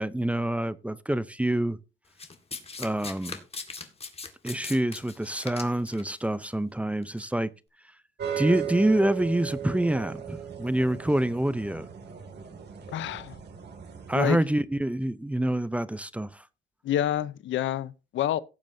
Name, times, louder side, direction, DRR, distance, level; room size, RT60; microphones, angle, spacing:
voice 1, 0.0-1.8 2.8-3.4 4.4-7.5 8.4-11.9 14.1-16.4, right 1 dB, 5° right, 0.6 m, -26 dB
Domestic sounds home sounds, 2.2-6.1 7.0-7.2, left 4 dB, 30° left, 1.9 m, -39 dB
sound 1, 8.2-14.2, right 9 dB, 60° right, 2.3 m, -36 dB
voice 2, 12.9-13.3 14.1-14.4 16.8-18.4, left 11 dB, 75° left, 0.7 m, -28 dB
17.5 x 7.2 x 2.7 m
cardioid pair, 90°, 20 cm